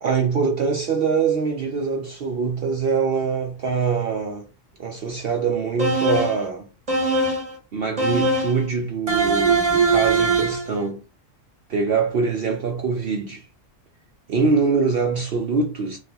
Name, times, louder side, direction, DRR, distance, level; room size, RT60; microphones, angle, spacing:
voice 1, 0.0-4.4 4.8-6.7 7.7-11.0 11.7-13.5 14.3-16.0, right 5 dB, 60° right, 0.6 m, -23 dB
sound 1, 5.8-6.4 6.9-7.5 8.0-8.6 9.1-10.7, right 3 dB, 30° right, 1.0 m, -21 dB
4.1 x 2.4 x 2.3 m
omnidirectional pair, 1.3 m